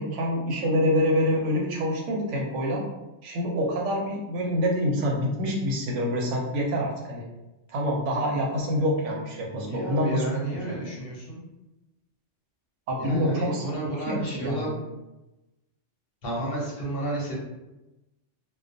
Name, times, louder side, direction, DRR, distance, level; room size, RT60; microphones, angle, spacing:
voice 1, 0.0-2.8 3.2-7.3 7.7-10.2 10.6-10.9 12.9-14.7, equal, 85° right, -1 dB, 1.0 m, -26 dB
voice 2, 9.5-11.4 13.0-14.7 16.2-17.3, right 1 dB, 55° left, -4 dB, 0.8 m, -31 dB
2.2 x 2.2 x 2.5 m, 1.0 s
omnidirectional pair, 1.2 m